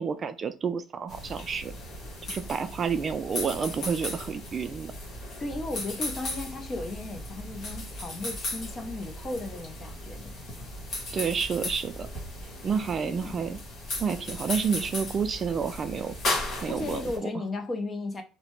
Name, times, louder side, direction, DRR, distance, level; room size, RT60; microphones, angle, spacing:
voice 1, 0.0-1.7 2.3-4.9 11.1-12.1 12.6-13.6 14.0-16.2 16.6-17.0, right 6 dB, 40° right, 0.3 m, -29 dB
sound 1, 1.1-17.2, left 2 dB, 55° left, 1.5 m, -36 dB
voice 2, 5.4-10.3 13.0-13.4 16.7-18.2, left 2 dB, 30° left, 0.7 m, -35 dB
2.8 x 2.1 x 3.0 m
supercardioid pair, 85°, 0 cm